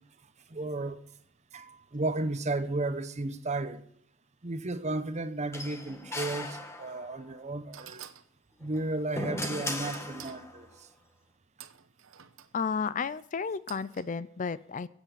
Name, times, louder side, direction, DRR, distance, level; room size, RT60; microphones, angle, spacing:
voice 1, 0.5-1.0 1.5-3.8 4.4-8.1 8.6-10.7, right 2 dB, 35° right, 0.9 m, -33 dB
sound 1, 5.5-7.3 8.6-10.7, left 1 dB, 15° left, 1.6 m, -38 dB
sound 2, 7.0-7.2 7.7-8.3 9.4-10.4 11.6-12.5 13.7-14.1, right 10 dB, 80° right, 0.9 m, -47 dB
voice 2, 12.5-14.9, left 5 dB, 40° left, 0.5 m, -32 dB
15.0 x 8.2 x 7.6 m
head